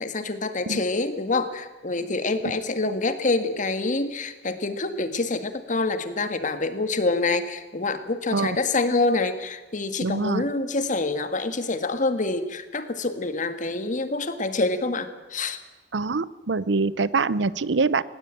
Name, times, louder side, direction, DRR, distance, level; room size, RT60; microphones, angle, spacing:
voice 1, 0.0-15.6, left 3 dB, 45° left, 10 dB, 1.7 m, -26 dB
voice 2, 10.0-10.4 15.9-18.0, right 4 dB, 75° right, 19 dB, 0.7 m, -24 dB
18.5 x 18.5 x 9.0 m, 1.2 s
head